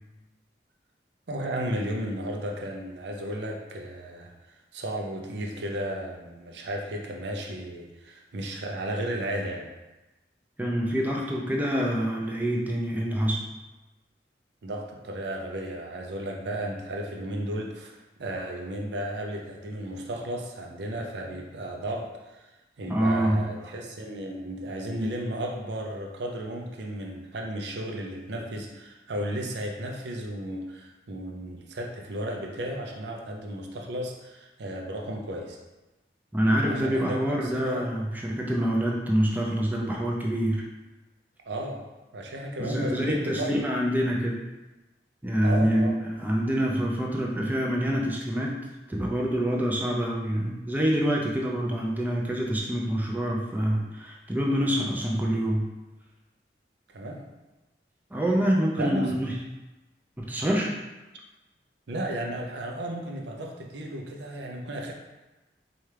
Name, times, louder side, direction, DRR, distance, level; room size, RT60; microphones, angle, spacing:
voice 1, 1.3-4.3 4.7-9.7 14.6-22.5 22.8-35.6 36.7-37.8 41.5-41.8 42.1-43.5 45.4-45.9 56.9-57.2 58.8-59.1 61.9-64.9, right 1 dB, 75° right, 1 dB, 0.5 m, -34 dB
voice 2, 10.6-13.4 22.9-23.5 36.3-40.6 42.6-44.4 45.2-48.6 48.9-55.7 58.1-59.3 60.2-60.7, equal, 10° right, -2 dB, 0.4 m, -26 dB
4.3 x 2.4 x 3.2 m, 1.1 s
head